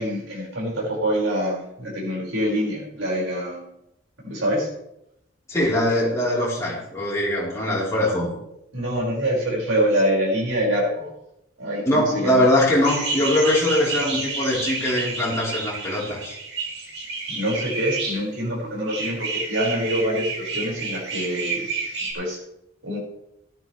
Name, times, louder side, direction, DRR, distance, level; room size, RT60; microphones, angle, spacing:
voice 1, 0.0-3.6 4.2-4.7 8.7-11.1 11.6-12.5 17.3-21.7 22.1-22.4 22.8-23.0, equal, 85° right, -3 dB, 5.4 m, -25 dB
voice 2, 5.5-8.4 11.9-16.4, left 1 dB, 15° left, -7 dB, 3.9 m, -22 dB
sound 1, 12.8-18.2 18.9-22.1, right 4 dB, 60° right, 2.7 m, -30 dB
15.0 x 12.0 x 3.3 m, 0.83 s
head